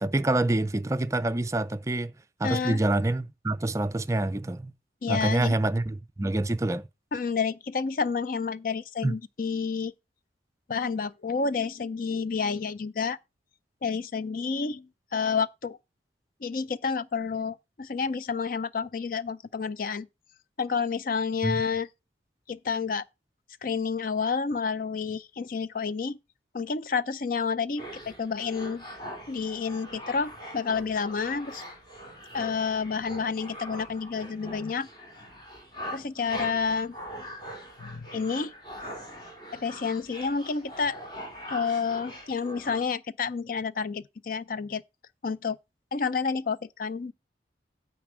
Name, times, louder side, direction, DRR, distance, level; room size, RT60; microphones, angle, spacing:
voice 1, 0.0-2.1 2.4-4.7 5.1-6.9 9.0-9.2 21.4-21.6, right 2 dB, 15° right, 0.4 m, -26 dB
voice 2, 2.4-2.8 5.0-5.5 7.1-9.9 10.7-13.2 13.8-15.8 16.4-20.1 20.6-21.9 22.5-23.0 23.6-26.2 26.5-28.8 29.3-31.6 32.3-34.9 35.9-37.0 37.8-38.5 39.5-41.0 41.5-44.8 45.2-45.6 45.9-47.1, left 5 dB, 50° left, 0.5 m, -29 dB
sound 1, 27.8-42.8, equal, 25° left, 3.3 m, -42 dB
9.4 x 4.6 x 6.1 m
head